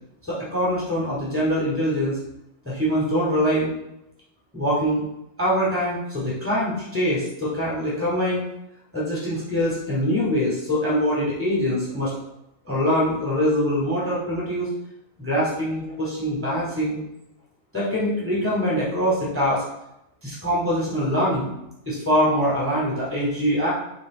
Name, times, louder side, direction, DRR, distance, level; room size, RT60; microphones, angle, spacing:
voice 1, 0.3-2.2 2.6-3.7 4.5-5.0 5.4-8.4 8.9-12.1 12.6-14.7 15.2-17.0 17.7-19.6 20.2-21.6 21.9-23.7, equal, 10° right, -7 dB, 2.4 m, -23 dB
6.9 x 3.7 x 4.2 m, 0.83 s
omnidirectional pair, 1.4 m